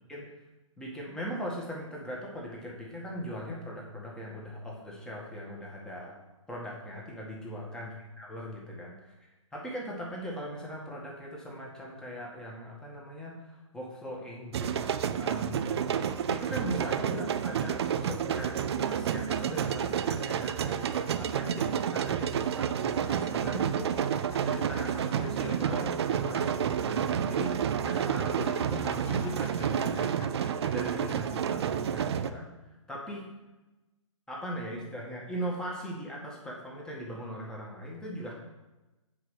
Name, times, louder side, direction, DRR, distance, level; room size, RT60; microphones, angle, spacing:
voice 1, 0.8-6.2 6.5-7.9 8.2-8.9 9.5-14.9 15.2-15.7 16.3-30.3 30.7-33.3 34.3-38.3, equal, 5° left, -3 dB, 1.7 m, -39 dB
sound 1, 14.5-32.3, right 8 dB, 50° right, 0.6 m, -30 dB
sound 2, 22.8-26.5 26.7-26.8 28.3-31.4, left 5 dB, 25° left, 1.1 m, -50 dB
8.1 x 4.9 x 6.4 m, 1.1 s
hypercardioid pair, 135°, 17 cm